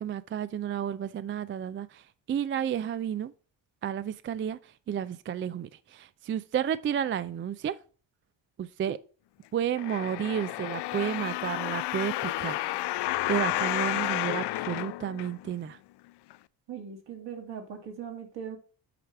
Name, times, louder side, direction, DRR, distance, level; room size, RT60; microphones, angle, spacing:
voice 1, 0.0-3.3 3.8-7.8 8.6-9.0 9.5-12.6 13.3-15.8, right 9 dB, 30° right, 0.3 m, -32 dB
Creaky dishwasher door, 9.8-15.7 16.3-16.4, left 16 dB, 55° left, 0.5 m, -31 dB
voice 2, 16.7-18.6, right 7 dB, 60° right, 2.3 m, -40 dB
8.5 x 3.3 x 5.7 m
supercardioid pair, 60°, 50 cm